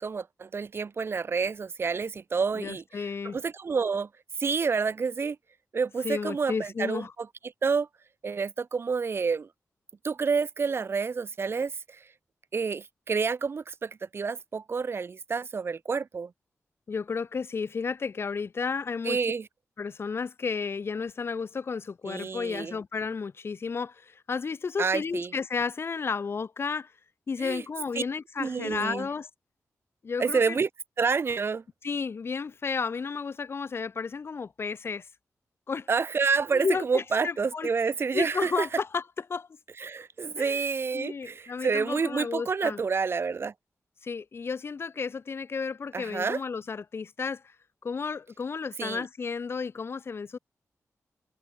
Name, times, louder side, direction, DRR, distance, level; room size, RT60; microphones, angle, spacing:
voice 1, 0.0-3.1 3.3-4.1 4.4-5.4 5.7-7.0 7.6-7.9 8.2-9.5 10.0-11.7 12.5-16.3 19.0-19.5 22.0-22.7 24.8-25.3 27.4-27.6 27.9-28.0 28.4-29.1 30.2-30.7 31.0-31.6 35.9-38.7 39.8-43.5 45.9-46.4 48.8-49.1, right 5 dB, 45° right, 3.1 m, -28 dB
voice 2, 2.5-3.4 6.0-7.1 16.9-19.3 19.8-26.9 27.3-29.3 30.0-30.6 31.8-35.1 35.7-35.9 36.5-37.7 38.1-39.0 39.3-39.5 40.3-40.6 40.9-42.8 44.0-47.5 47.8-50.4, left 5 dB, 45° left, 3.2 m, -32 dB
wide cardioid pair, 155°, 5 cm